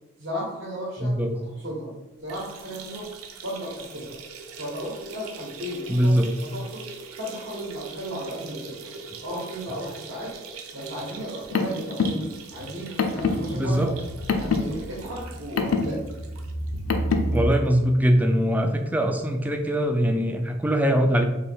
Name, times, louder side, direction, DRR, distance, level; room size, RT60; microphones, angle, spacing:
voice 1, 0.2-1.2 1.4-1.9 2.2-3.1 3.4-4.2 4.6-6.9 7.2-8.9 9.2-10.4 10.7-12.2 12.5-13.9 14.3-16.0, equal, 55° right, -3 dB, 1.0 m, -35 dB
voice 2, 1.0-1.3 5.9-6.3 13.5-13.9 17.3-21.2, equal, 5° right, 4 dB, 0.3 m, -22 dB
sound 1, 2.2-17.6 17.9-18.0 18.4-18.5 19.5-19.6, right 5 dB, 75° right, 0.5 m, -42 dB
Car, 11.2-17.4, left 3 dB, 80° left, 0.5 m, -27 dB
3.4 x 3.0 x 4.4 m, 1.1 s
head